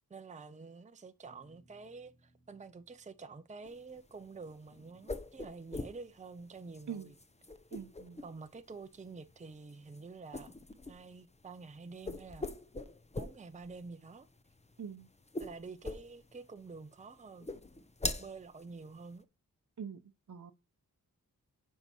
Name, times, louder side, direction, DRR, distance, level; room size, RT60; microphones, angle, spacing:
voice 1, 0.1-7.2 8.2-10.5 10.9-12.5 13.2-14.3 15.4-17.5 18.2-19.3, right 4 dB, 20° right, 0.6 m, -48 dB
Bass guitar, 1.2-5.7, right 1 dB, 70° left, 3.1 m, -70 dB
sound 1, 3.6-19.2, left 2 dB, 20° left, 0.7 m, -44 dB
voice 2, 7.7-8.2 14.8-15.1 19.8-20.0 20.3-20.5, right 7 dB, 55° right, 0.8 m, -43 dB
7.2 x 5.6 x 5.4 m
wide cardioid pair, 90°, 36 cm